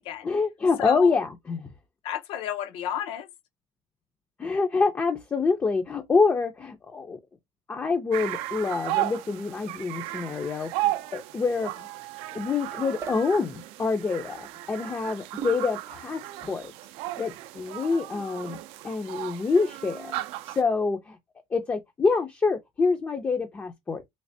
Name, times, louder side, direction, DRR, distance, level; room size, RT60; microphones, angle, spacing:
voice 1, 0.2-1.7 4.4-7.2 7.7-11.9 12.3-16.7 17.2-18.6 18.8-20.1 20.4-21.2 21.5-24.0, left 4 dB, 15° left, 0.4 m, -26 dB
voice 2, 0.8-1.1 2.0-3.3 17.9-18.2, left 10 dB, 60° left, 0.6 m, -33 dB
sound 1, 8.1-20.6, right 16 dB, 75° right, 0.4 m, -35 dB
sound 2, 13.0-13.3 15.4-15.8, right 8 dB, 30° right, 0.6 m, -37 dB
3.2 x 3.2 x 2.6 m
cardioid pair, 155°, 10 cm